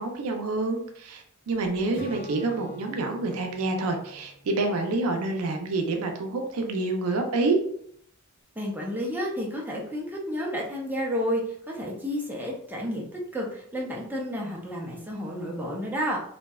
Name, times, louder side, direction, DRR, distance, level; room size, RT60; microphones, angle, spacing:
voice 1, 0.0-7.6, right 3 dB, 85° right, 4 dB, 0.4 m, -27 dB
Strum, 1.9-6.0, left 1 dB, 60° left, 0.9 m, -46 dB
voice 2, 8.6-13.1 13.3-16.2, equal, 10° right, -2 dB, 0.4 m, -31 dB
2.6 x 2.1 x 2.2 m, 0.65 s
head